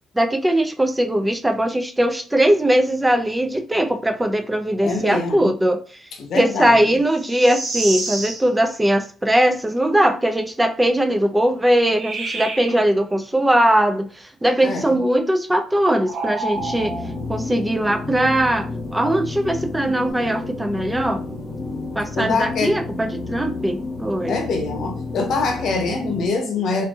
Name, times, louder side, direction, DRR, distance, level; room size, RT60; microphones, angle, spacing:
voice 1, 0.2-5.8 6.3-17.0 17.3-21.2 22.0-24.3, right 1 dB, 10° right, 0.4 m, -20 dB
voice 2, 4.8-5.5 6.2-7.0 14.6-15.0 22.2-22.8 24.3-26.8, left 4 dB, 70° left, 0.7 m, -24 dB
sound 1, 7.1-8.5 11.8-12.8 16.0-17.2 19.7-20.1, right 3 dB, 55° right, 0.8 m, -29 dB
sound 2, 16.5-26.3, left 3 dB, 35° left, 1.0 m, -31 dB
2.6 x 2.6 x 2.3 m
cardioid pair, 90°, 0 cm